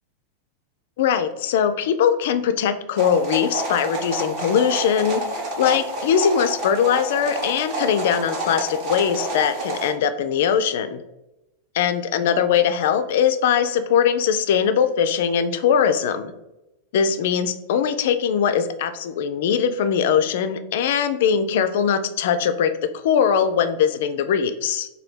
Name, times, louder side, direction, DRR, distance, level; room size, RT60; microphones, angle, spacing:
voice 1, 1.0-5.2 5.6-11.0 11.7-16.3 16.9-24.9, left 8 dB, 60° left, 10 dB, 0.3 m, -21 dB
sound 1, 3.0-9.9, right 2 dB, 50° right, 1.0 m, -29 dB
3.9 x 2.6 x 3.2 m, 0.94 s
figure-of-eight pair, 90°, 0 cm